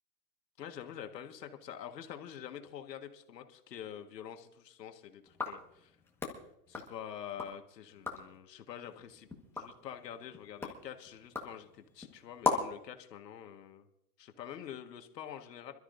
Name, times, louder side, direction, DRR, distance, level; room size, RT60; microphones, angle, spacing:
voice 1, 0.6-5.9 6.7-13.9 14.2-15.7, left 9 dB, 80° left, 6 dB, 1.8 m, -46 dB
sound 1, 5.3-7.6 7.9-8.4 8.9-12.9, left 3 dB, 5° left, 1.5 m, -39 dB
26.0 x 13.0 x 2.7 m, 0.77 s
hypercardioid pair, 140°, 49 cm